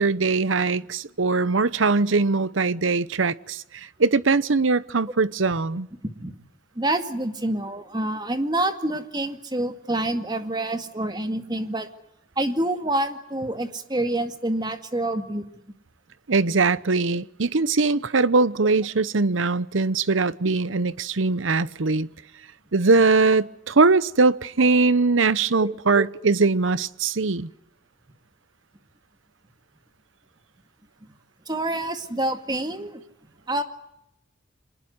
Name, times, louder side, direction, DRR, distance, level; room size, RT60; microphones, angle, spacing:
voice 1, 0.0-5.9 16.3-22.1 22.7-27.5, right 3 dB, 75° right, 0.9 m, -21 dB
voice 2, 6.8-11.9 12.4-15.4 25.6-26.1 31.5-33.0 33.5-33.6, right 1 dB, 20° right, 2.1 m, -27 dB
26.0 x 19.5 x 9.4 m
head